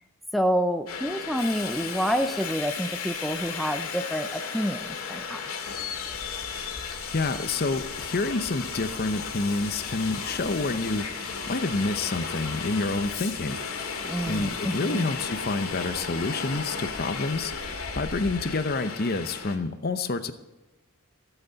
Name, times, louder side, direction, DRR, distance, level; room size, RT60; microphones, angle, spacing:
voice 1, 0.3-5.4 14.0-15.0, equal, ahead, 6 dB, 0.4 m, -28 dB
Subway metro underground, 0.9-19.6, left 5 dB, 75° left, 2.1 m, -34 dB
voice 2, 7.1-11.0 11.5-13.6 14.3-17.5 18.0-20.3, left 3 dB, 45° left, 10 dB, 0.8 m, -28 dB
15.5 x 8.1 x 4.1 m, 1.1 s
head